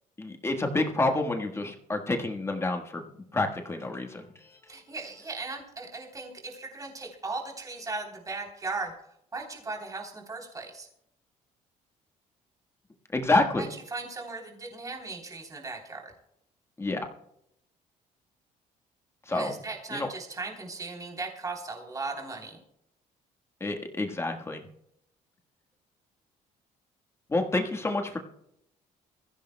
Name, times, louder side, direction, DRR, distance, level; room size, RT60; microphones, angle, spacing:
voice 1, 0.2-3.0 3.3-4.2 13.1-13.7 16.8-17.1 19.3-19.5 19.9-20.1 23.6-24.6 27.3-28.2, left 2 dB, 20° left, 4 dB, 1.4 m, -28 dB
voice 2, 4.7-8.9 9.3-10.9 13.6-16.1 19.3-22.6, right 3 dB, 25° right, 0 dB, 3.3 m, -37 dB
22.5 x 15.0 x 2.2 m, 0.76 s
cardioid pair, 110°, 14 cm